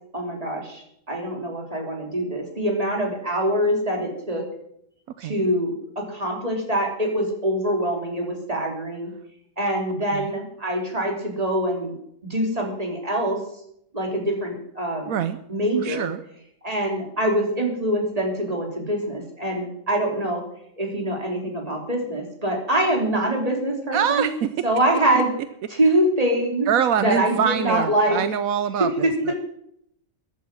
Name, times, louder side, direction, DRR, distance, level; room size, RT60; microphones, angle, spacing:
voice 1, 0.1-4.4 5.2-9.1 9.6-11.9 12.3-13.4 13.9-15.1 15.5-16.1 16.6-20.4 20.8-24.3 24.6-25.3 25.7-26.7 27.0-28.2 29.0-29.1, right 1 dB, 25° right, 1 dB, 3.3 m, -24 dB
voice 2, 5.2-5.5 10.1-10.4 15.1-15.4 15.8-16.2 23.9-24.5 26.7-29.3, right 9 dB, 80° right, 12 dB, 1.1 m, -24 dB
13.5 x 11.5 x 6.2 m, 0.74 s
omnidirectional pair, 1.5 m